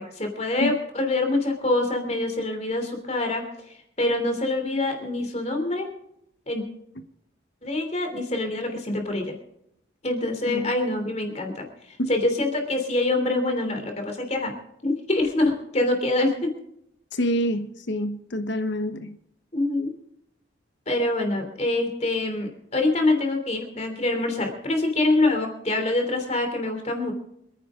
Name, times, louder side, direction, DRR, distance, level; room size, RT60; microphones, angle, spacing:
voice 1, 0.0-3.4 4.0-5.9 6.5-6.6 7.6-9.3 10.0-11.7 12.1-14.5 14.8-16.5 19.5-19.9 20.9-27.1, left 2 dB, 35° left, 3.2 m, -25 dB
voice 2, 17.1-19.1, equal, 65° left, 1.1 m, -27 dB
27.0 x 10.0 x 3.8 m
head